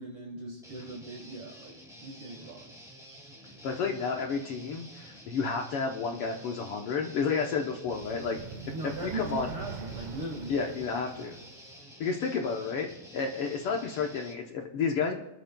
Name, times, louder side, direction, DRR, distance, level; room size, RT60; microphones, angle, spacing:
voice 1, 0.0-2.7 8.7-10.7, right 3 dB, 50° right, 0 dB, 2.3 m, -39 dB
Guitar, 0.6-14.3, equal, ahead, 1.6 m, -50 dB
voice 2, 3.6-8.4 8.8-9.5 10.5-11.4 12.0-15.2, left 5 dB, 65° left, 2 dB, 1.5 m, -31 dB
sound 1, 7.9-11.8, right 5 dB, 75° right, 2.2 m, -43 dB
24.0 x 11.5 x 2.3 m, 0.93 s
omnidirectional pair, 3.3 m